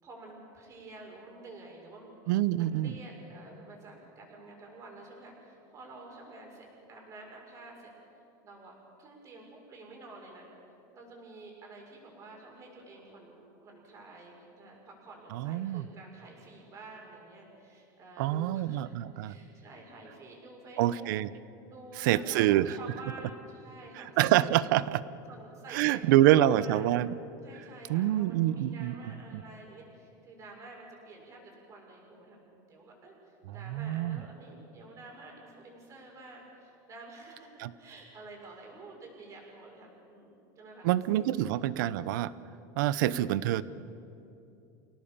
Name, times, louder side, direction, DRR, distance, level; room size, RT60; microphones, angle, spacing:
voice 1, 0.0-2.1 2.6-7.9 8.4-10.5 10.9-21.1 21.7-24.7 25.3-26.9 27.4-33.2 33.5-41.5, right 2 dB, 30° right, 0 dB, 6.4 m, -50 dB
voice 2, 2.3-2.9 15.3-15.8 18.2-19.3 20.8-21.3 22.0-22.8 24.0-25.0 25.7-27.1 27.9-28.9 29.3-29.4 33.5-34.2 37.6-37.7 40.8-42.3 42.8-43.6, right 13 dB, 75° right, 17 dB, 0.8 m, -26 dB
28.5 x 18.0 x 7.4 m, 2.7 s
supercardioid pair, 150°, 11 cm